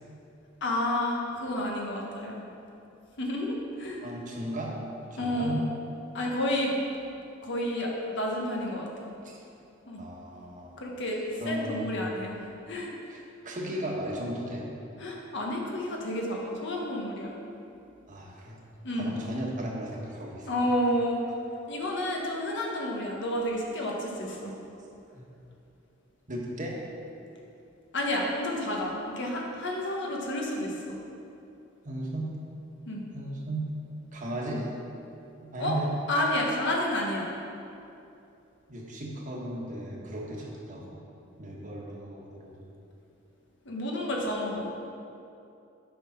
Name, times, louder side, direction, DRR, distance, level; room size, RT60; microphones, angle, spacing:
voice 1, 0.6-2.5 3.2-4.0 5.2-5.6 6.1-6.7 7.4-9.1 9.9-10.0 10.8-12.4 12.7-12.9 15.0-17.3 18.8-19.1 20.5-21.2 21.7-24.5 27.9-31.0 32.9-33.0 35.6-35.8 36.1-37.3 43.6-44.7, left 1 dB, 65° left, -1 dB, 1.4 m, -30 dB
voice 2, 4.0-4.8 5.2-5.7 9.2-9.4 10.0-10.7 11.4-12.1 13.1-14.7 18.1-18.6 18.9-20.6 25.1-25.2 26.3-26.8 31.8-32.3 33.1-33.7 34.1-34.7 35.4-35.9 38.7-41.0 41.4-42.7, right 1 dB, 40° right, -2 dB, 1.4 m, -36 dB
8.4 x 5.8 x 5.7 m, 2.7 s
head